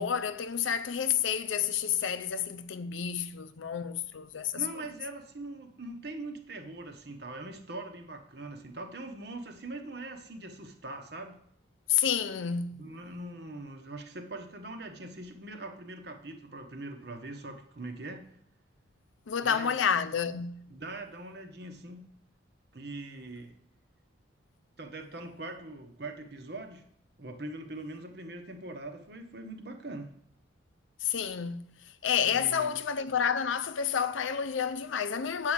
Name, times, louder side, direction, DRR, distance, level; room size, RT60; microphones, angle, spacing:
voice 1, 0.0-4.6 11.9-12.8 19.3-20.7 31.0-31.7 32.0-35.5, left 8 dB, 80° left, 0.5 m, -30 dB
voice 2, 4.5-11.4 12.7-18.2 19.4-19.7 20.7-22.1 22.7-23.5 24.8-26.8 27.2-30.1 32.3-32.7, right 2 dB, 55° right, 1.0 m, -42 dB
8.4 x 4.9 x 7.3 m
head